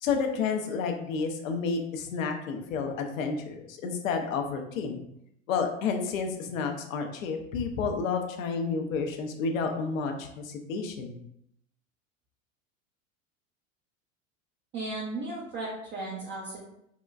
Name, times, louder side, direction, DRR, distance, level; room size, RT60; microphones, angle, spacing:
voice 1, 0.0-5.0 5.5-11.2, left 5 dB, 80° left, 4 dB, 0.6 m, -30 dB
voice 2, 14.7-16.7, right 2 dB, 30° right, -4 dB, 0.6 m, -35 dB
3.7 x 2.1 x 2.3 m, 0.76 s
hypercardioid pair, 95°, 40 cm